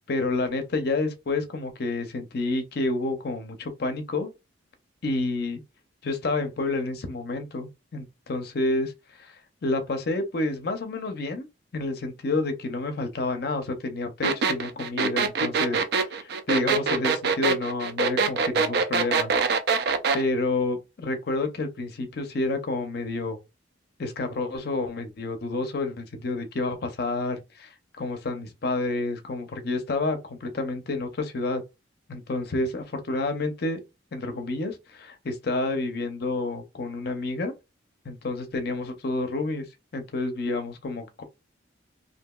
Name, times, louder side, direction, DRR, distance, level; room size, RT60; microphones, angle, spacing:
voice 1, 0.0-4.3 5.0-5.6 6.0-8.9 9.2-11.5 11.7-19.3 20.1-23.4 24.0-31.6 32.1-33.8 34.1-37.5 38.0-39.7 39.9-41.2, left 2 dB, 55° left, 0.5 m, -29 dB
sound 1, 14.2-20.2, right 5 dB, 55° right, 0.4 m, -23 dB
2.8 x 2.6 x 2.2 m
head